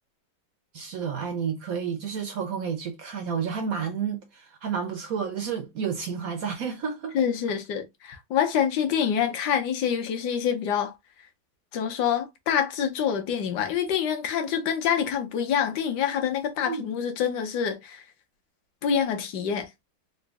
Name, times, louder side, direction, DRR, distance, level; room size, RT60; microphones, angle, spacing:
voice 1, 0.7-7.2 16.7-16.8, right 6 dB, 75° right, 0.8 m, -31 dB
voice 2, 7.1-10.9 11.7-18.0 18.8-19.7, left 8 dB, 65° left, 1.2 m, -26 dB
3.9 x 2.2 x 3.5 m
omnidirectional pair, 2.3 m